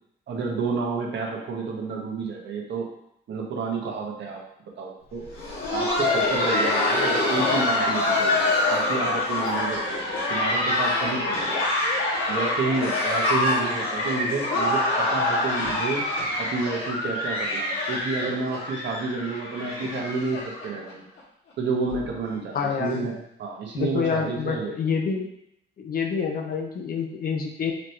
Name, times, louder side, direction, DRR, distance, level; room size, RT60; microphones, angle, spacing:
voice 1, 0.3-2.9 3.3-4.4 4.8-5.3 5.7-11.6 12.3-16.0 16.4-21.1 21.6-24.8, right 4 dB, 65° right, 0 dB, 1.0 m, -30 dB
Laughter, 5.2-20.9 21.2-21.3 21.9-22.0 22.5-22.7 23.8-23.9, left 2 dB, 75° left, 1.3 m, -25 dB
voice 2, 22.5-23.1 23.7-25.3 25.8-27.7, left 6 dB, 50° left, 2 dB, 0.7 m, -27 dB
4.1 x 2.9 x 3.2 m, 0.74 s
cardioid pair, 90°, 20 cm